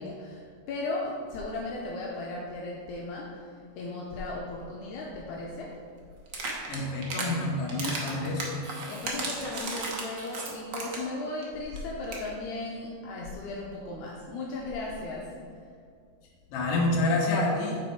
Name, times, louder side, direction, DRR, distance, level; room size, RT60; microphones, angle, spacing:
voice 1, 0.0-5.8 8.9-15.7, left 2 dB, 75° left, -3 dB, 2.0 m, -36 dB
sound 1, 6.3-7.3 7.7-11.1 11.4-11.5 11.8-11.9 12.0-12.3, right 3 dB, 75° right, 0.9 m, -34 dB
voice 2, 6.7-8.6 16.5-17.8, left 2 dB, 60° left, -2 dB, 1.9 m, -28 dB
8.4 x 4.2 x 4.6 m, 2.2 s
omnidirectional pair, 3.6 m